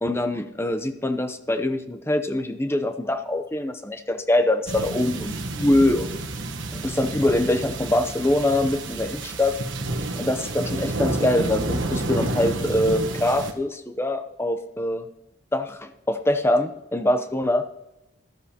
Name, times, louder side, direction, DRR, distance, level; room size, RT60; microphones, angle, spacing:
voice 1, 0.0-6.1 6.7-9.6 10.2-15.1 15.5-17.6, left 1 dB, 10° left, 9 dB, 0.6 m, -24 dB
sound 1, 4.7-13.5, right 2 dB, 65° right, 1.1 m, -30 dB
15.0 x 13.5 x 2.9 m, 0.94 s
head